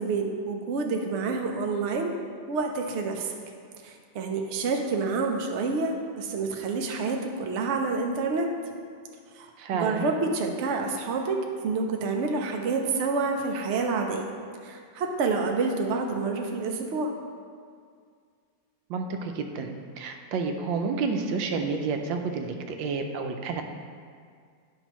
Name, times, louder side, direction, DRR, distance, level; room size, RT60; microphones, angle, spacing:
voice 1, 0.0-2.1 2.5-3.3 3.8-8.5 9.4-14.3 14.6-17.1, right 4 dB, 70° right, 3 dB, 0.7 m, -28 dB
voice 2, 9.6-10.1 18.9-23.6, right 4 dB, 85° right, 5 dB, 1.3 m, -30 dB
9.9 x 5.3 x 3.0 m, 2.1 s
omnidirectional pair, 2.0 m